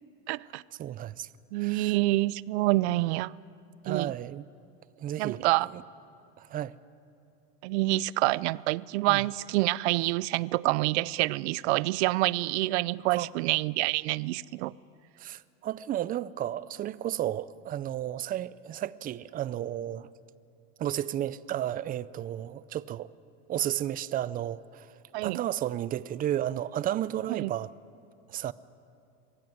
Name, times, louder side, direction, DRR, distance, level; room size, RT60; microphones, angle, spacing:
voice 1, 0.3-0.6 1.5-3.3 3.9-4.1 5.2-5.7 7.6-14.7 25.1-25.4 27.3-27.5, right 19 dB, 85° right, 0.5 m, -27 dB
voice 2, 0.8-1.3 1.5-2.0 3.8-4.4 5.0-5.5 5.7-5.8 6.4-6.8 9.1-9.2 13.1-13.3 15.2-20.1 20.8-23.1 23.5-24.9 25.2-27.7 28.3-28.5, right 12 dB, 25° right, 0.4 m, -33 dB
22.0 x 16.0 x 9.3 m
supercardioid pair, 140°, 32 cm